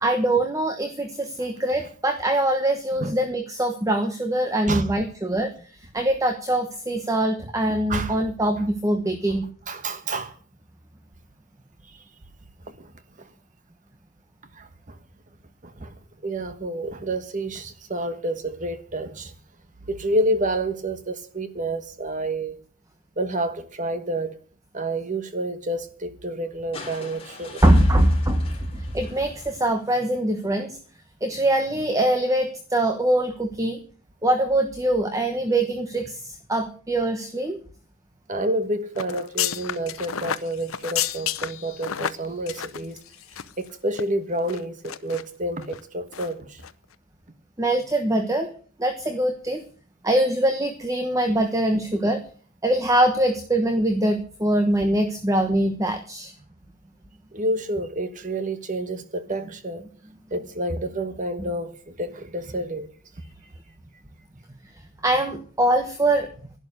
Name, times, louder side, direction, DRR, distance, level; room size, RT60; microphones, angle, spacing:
voice 1, 0.0-5.5 5.9-9.5 27.6-30.8 31.2-33.8 34.2-37.6 47.6-48.5 48.8-49.6 50.0-52.2 52.6-56.3 61.4-61.5 65.0-66.3, right 1 dB, 15° right, 1.1 m, -23 dB
voice 2, 9.7-10.3 12.7-12.9 13.2-13.3 14.6-15.0 15.6-15.9 16.2-19.3 19.9-22.6 23.2-24.3 24.7-27.6 38.3-43.0 43.6-46.6 57.3-59.8 60.3-62.9, right 1 dB, 40° right, 1.3 m, -29 dB
sound 1, 26.7-30.0 31.4-31.5, left 3 dB, 25° left, 3.4 m, -42 dB
sound 2, 39.0-43.7 43.9-44.0 44.5-45.2 45.6-45.8 46.1-46.3 46.6-46.7, left 10 dB, 80° left, 0.7 m, -31 dB
11.5 x 10.5 x 6.6 m
head